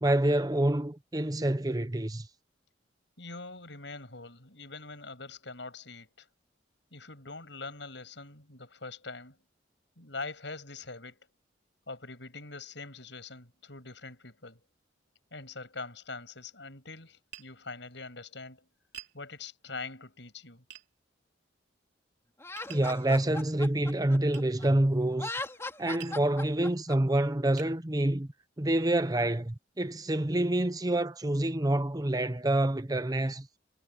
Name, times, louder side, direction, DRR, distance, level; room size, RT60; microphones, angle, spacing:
voice 1, 0.0-2.3 22.7-25.3 25.8-28.3 28.6-33.5, right 1 dB, 20° right, 0.7 m, -27 dB
voice 2, 3.2-6.3 6.9-9.4 10.0-11.3 11.9-14.6 15.3-18.7 19.1-20.6, left 3 dB, 70° left, 7.6 m, -43 dB
Tap, 17.3-17.5 18.9-19.2 20.7-20.9 22.6-22.9 24.3-24.5 26.0-26.2 26.9-27.0 27.6-27.8, right 10 dB, 60° right, 4.5 m, -47 dB
Laughter, 22.4-24.7 25.1-27.0, left 2 dB, 15° left, 3.0 m, -38 dB
head